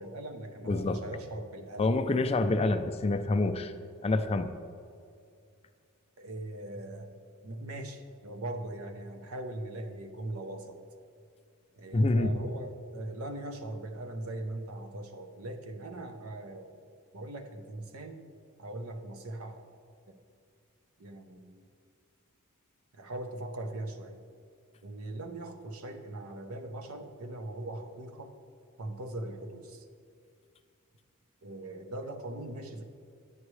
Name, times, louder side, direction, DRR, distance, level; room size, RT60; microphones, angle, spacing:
voice 1, 0.0-1.9 6.2-7.1 7.4-10.8 11.8-16.8 17.1-18.3 18.6-19.7 21.0-21.6 22.9-24.2 24.8-28.3 28.8-29.9 31.4-32.8, right 1 dB, 75° right, 6 dB, 0.8 m, -40 dB
voice 2, 0.6-1.0 1.8-3.7 4.0-4.5 11.9-12.4, left 2 dB, 30° left, 9 dB, 0.3 m, -27 dB
9.7 x 9.3 x 3.2 m, 2.3 s
head